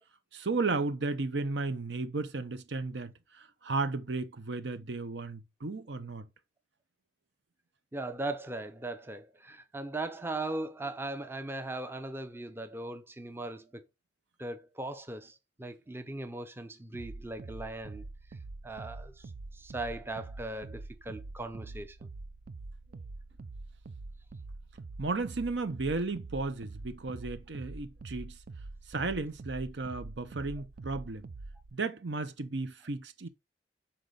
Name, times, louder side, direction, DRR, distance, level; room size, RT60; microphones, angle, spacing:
voice 1, 0.3-6.3 25.0-28.4 28.9-31.3 31.7-33.3, right 3 dB, 70° right, 0.8 m, -34 dB
voice 2, 7.9-13.8 14.4-18.0 18.6-19.1 19.5-22.0, right 2 dB, 15° right, 0.6 m, -39 dB
sound 1, 16.9-31.7, right 3 dB, 55° right, 0.5 m, -45 dB
6.6 x 4.4 x 3.9 m
head